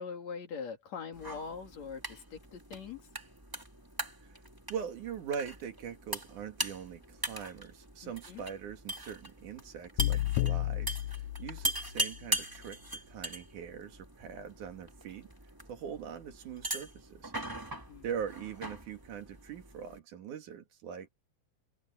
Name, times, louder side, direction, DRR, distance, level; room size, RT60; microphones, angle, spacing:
voice 1, 0.0-3.0 8.0-8.4 17.9-18.1, left 6 dB, 60° left, 3.7 m, -42 dB
sound 1, 1.1-20.0, right 1 dB, 5° right, 2.2 m, -41 dB
voice 2, 4.7-15.3 15.7-17.3 18.0-21.1, right 7 dB, 80° right, 3.5 m, -42 dB
sound 2, 10.0-12.1, left 15 dB, 90° left, 1.4 m, -32 dB
omnidirectional pair, 3.5 m